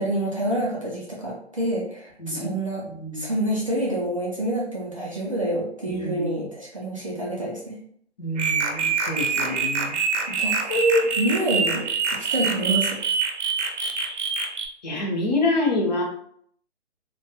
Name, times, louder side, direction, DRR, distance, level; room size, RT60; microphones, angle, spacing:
voice 1, 0.0-2.8 3.1-7.8 10.3-11.9 12.3-13.0, right 1 dB, 30° right, -5 dB, 0.4 m, -26 dB
voice 2, 2.2-2.5 2.9-3.3 5.9-6.4 8.2-10.0 14.8-16.0, left 2 dB, 40° left, -2 dB, 0.6 m, -27 dB
sound 1, 8.4-14.7, right 5 dB, 80° right, 0.6 m, -25 dB
2.2 x 2.2 x 2.8 m, 0.64 s
hypercardioid pair, 150°, 35 cm